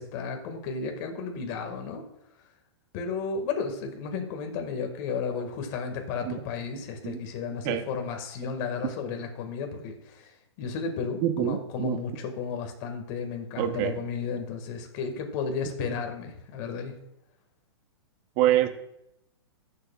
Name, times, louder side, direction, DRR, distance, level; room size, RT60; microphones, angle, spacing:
voice 1, 0.0-2.0 2.4-2.5 2.9-16.9, left 5 dB, 40° left, 4 dB, 1.8 m, -33 dB
voice 2, 11.2-12.0 13.6-14.0 18.4-18.7, right 12 dB, 40° right, 9 dB, 0.9 m, -25 dB
15.0 x 6.9 x 2.4 m, 0.81 s
hypercardioid pair, 140°, 15 cm